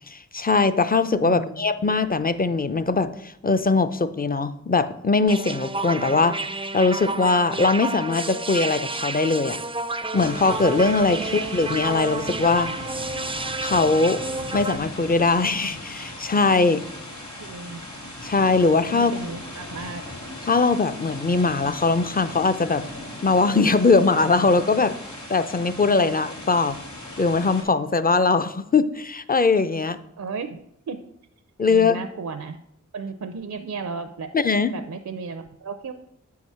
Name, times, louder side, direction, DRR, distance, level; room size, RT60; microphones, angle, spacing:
voice 1, 0.1-6.4 6.7-9.6 10.1-12.7 13.6-14.2 14.5-16.8 18.2-19.1 20.5-22.8 23.2-24.9 25.3-26.8 27.2-30.0 31.6-32.0 34.3-34.7, left 4 dB, 30° left, 11 dB, 0.6 m, -21 dB
voice 2, 1.2-1.7 17.4-17.8 18.9-20.0 26.0-26.1 30.2-30.6 30.9-31.0 31.7-32.6 32.9-35.9, right 4 dB, 70° right, 8 dB, 0.6 m, -34 dB
sound 1, 5.3-14.8, right 3 dB, 20° right, 0.4 m, -30 dB
sound 2, 10.2-27.6, left 1 dB, 70° left, 2.7 m, -38 dB
7.7 x 4.8 x 5.5 m, 0.75 s
cardioid pair, 45°, 30 cm